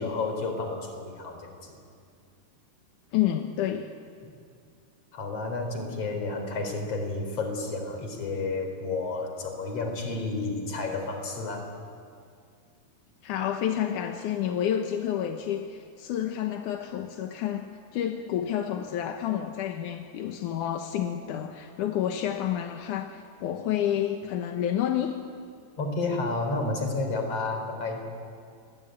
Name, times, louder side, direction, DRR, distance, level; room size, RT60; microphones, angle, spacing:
voice 1, 0.0-1.8 5.1-11.8 25.8-28.0, left 3 dB, 40° left, 4 dB, 4.6 m, -31 dB
voice 2, 3.1-3.9 13.2-17.7 17.9-25.2, left 10 dB, 70° left, 4 dB, 2.1 m, -29 dB
29.5 x 21.5 x 9.0 m, 2.3 s
omnidirectional pair, 4.8 m